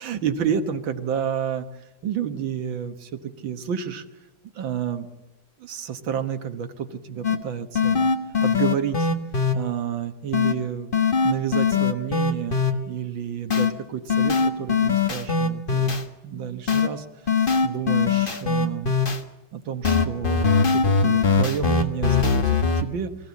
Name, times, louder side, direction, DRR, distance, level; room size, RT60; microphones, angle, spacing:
voice 1, 0.0-1.7 2.0-4.1 4.6-5.1 5.6-8.1 8.4-9.1 9.5-10.9 11.2-12.6 12.9-16.0 16.2-17.1 17.3-18.9 19.5-23.1, right 8 dB, 80° right, 8 dB, 2.0 m, -30 dB
sound 1, 7.2-7.4 7.8-9.5 10.3-10.5 10.9-12.7 13.5-13.7 14.1-16.0 16.7-16.9 17.3-19.2 19.8-22.8, left 5 dB, 30° left, 1.3 m, -21 dB
23.0 x 15.0 x 8.4 m, 1.0 s
omnidirectional pair, 2.1 m